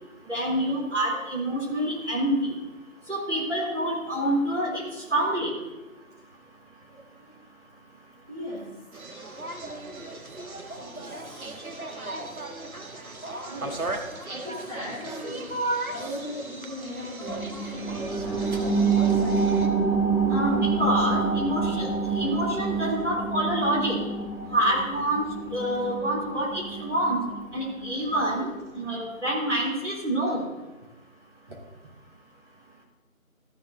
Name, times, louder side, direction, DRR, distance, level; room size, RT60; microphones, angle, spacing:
voice 1, 0.3-2.5 3.1-4.8 5.1-5.5 20.3-21.9 22.2-24.0 24.5-25.2 25.5-27.2 27.5-30.4, right 1 dB, 55° right, -4 dB, 3.7 m, -27 dB
voice 2, 6.9-7.3 8.3-8.8 10.6-12.1 13.5-13.9 14.3-15.6 15.9-19.2, left 1 dB, 30° right, -11 dB, 2.2 m, -39 dB
sound 1, 8.9-19.7, right 2 dB, 80° right, 1.5 m, -36 dB
sound 2, 17.3-28.4 28.8-28.9, right 4 dB, ahead, 0.8 m, -27 dB
14.0 x 6.8 x 3.9 m, 1.1 s
figure-of-eight pair, 175°, 42 cm